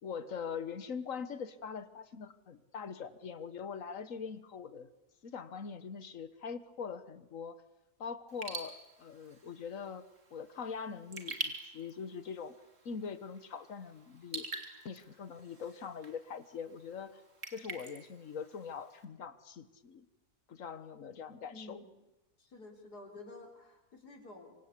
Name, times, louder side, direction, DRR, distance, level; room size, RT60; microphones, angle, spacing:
voice 1, 0.0-4.9 5.2-7.6 8.0-10.0 10.3-12.6 12.8-14.5 14.8-17.2 17.5-20.1 20.5-21.8, left 6 dB, 55° left, 14 dB, 1.7 m, -42 dB
Raindrop / Drip, 8.3-19.1, right 3 dB, 50° right, 3.2 m, -47 dB
voice 2, 21.5-21.9 22.4-24.5, left 2 dB, 90° left, 4 dB, 4.5 m, -51 dB
26.0 x 25.5 x 8.4 m, 0.98 s
omnidirectional pair, 1.7 m